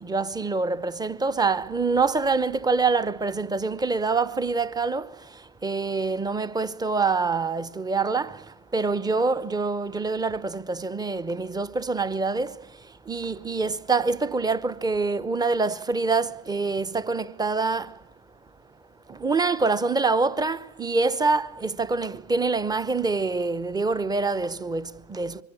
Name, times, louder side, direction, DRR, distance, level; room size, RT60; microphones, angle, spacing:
voice 1, 0.0-5.1 5.6-8.4 8.7-12.5 13.1-17.9 19.1-25.4, right 4 dB, 10° right, 0.9 m, -25 dB
25.0 x 23.5 x 8.6 m
hypercardioid pair, 90°, 35 cm